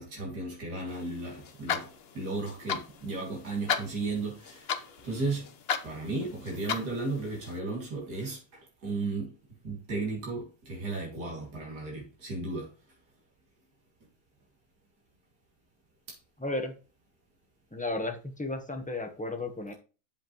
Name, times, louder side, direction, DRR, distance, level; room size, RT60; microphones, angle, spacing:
voice 1, 0.0-1.9 2.1-4.6 5.0-5.5 5.8-8.4 8.8-9.3 9.6-12.7, right 3 dB, 85° right, 3.0 m, -34 dB
sound 1, 0.9-7.6, left 7 dB, 50° left, 0.8 m, -37 dB
voice 2, 16.4-16.7 17.7-19.7, left 2 dB, 5° left, 0.8 m, -34 dB
8.0 x 7.2 x 3.0 m
omnidirectional pair, 1.7 m